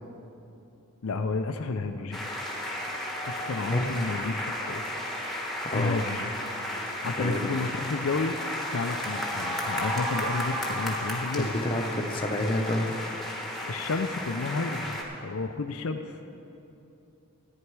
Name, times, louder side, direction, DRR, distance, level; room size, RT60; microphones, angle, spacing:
voice 1, 1.0-2.3 3.3-4.8 5.7-6.3 7.0-8.4 8.7-11.5 13.7-15.0 15.2-16.2, left 3 dB, 65° left, 6 dB, 0.5 m, -31 dB
sound 1, 2.1-15.0, left 1 dB, ahead, 1.2 m, -33 dB
voice 2, 5.6-6.0 7.2-7.4 11.4-12.9, left 1 dB, 25° left, 2 dB, 0.8 m, -29 dB
14.0 x 9.9 x 4.7 m, 2.9 s
head